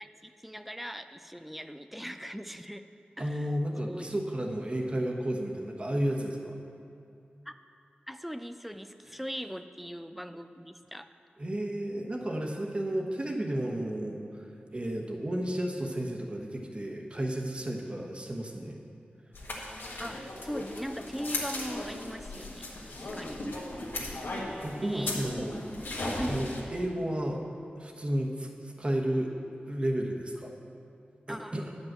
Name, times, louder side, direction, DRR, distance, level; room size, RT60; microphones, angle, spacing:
voice 1, 0.0-2.9 3.2-3.5 3.9-4.2 7.5-7.6 8.1-11.1 20.0-22.7 23.0-23.5 24.8-25.5 26.1-26.4 31.3-31.5, equal, 5° right, 9 dB, 0.4 m, -40 dB
voice 2, 3.2-6.6 11.4-18.8 23.5-23.6 24.6-25.6 26.3-27.4 27.7-29.3 29.7-30.5 31.3-31.7, right 1 dB, 35° right, 1 dB, 1.1 m, -32 dB
sound 1, 19.3-26.6, left 2 dB, 85° left, 1.6 m, -37 dB
10.0 x 5.4 x 7.4 m, 2.5 s
wide cardioid pair, 90°, 3 cm